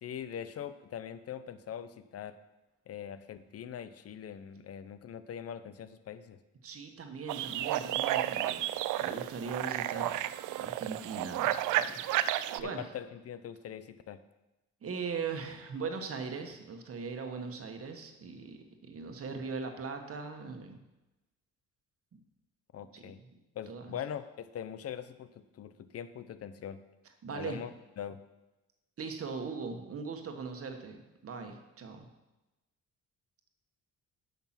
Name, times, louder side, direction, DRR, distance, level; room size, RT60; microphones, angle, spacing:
voice 1, 0.0-2.3 2.9-6.4 12.6-14.2 22.7-23.2 23.5-26.8 27.3-27.7 28.0-28.2, left 9 dB, 55° left, 13 dB, 0.7 m, -42 dB
voice 2, 6.6-12.9 14.8-20.8 22.9-23.0 23.7-24.0 27.2-27.6 29.0-32.1, right 5 dB, 50° right, 5 dB, 1.4 m, -40 dB
sound 1, 7.3-12.6, right 13 dB, 80° right, 0.5 m, -32 dB
8.8 x 5.9 x 5.9 m, 1.0 s
cardioid pair, 90°, 30 cm